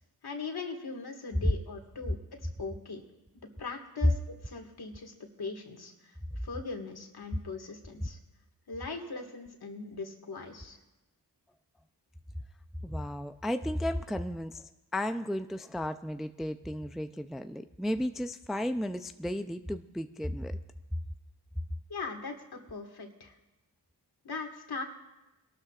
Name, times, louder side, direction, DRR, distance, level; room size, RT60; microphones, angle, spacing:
voice 1, 0.2-2.2 2.6-3.0 3.6-6.2 6.4-8.2 8.7-10.8 21.9-23.4 24.2-24.8, left 4 dB, 60° left, 3 dB, 1.9 m, -40 dB
voice 2, 12.8-20.5, left 1 dB, ahead, 9 dB, 0.4 m, -34 dB
22.5 x 12.5 x 2.5 m, 1.0 s
cardioid pair, 50°, 42 cm